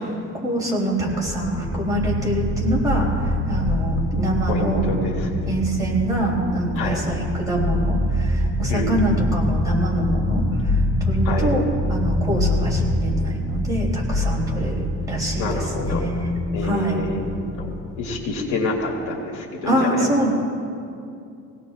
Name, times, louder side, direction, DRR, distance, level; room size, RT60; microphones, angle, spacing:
voice 1, 0.4-4.8 5.5-11.6 11.9-14.7 15.1-17.0 19.6-20.3, right 1 dB, 10° right, -5 dB, 3.5 m, -25 dB
sound 1, 1.0-18.3, left 1 dB, 50° left, 3.6 m, -25 dB
voice 2, 4.5-5.5 6.8-7.0 8.7-9.1 11.2-11.5 15.4-16.0 16.5-17.2 17.6-20.1, left 3 dB, 85° left, -1 dB, 2.4 m, -27 dB
23.5 x 17.5 x 2.5 m, 2.5 s
cardioid pair, 155°, 30 cm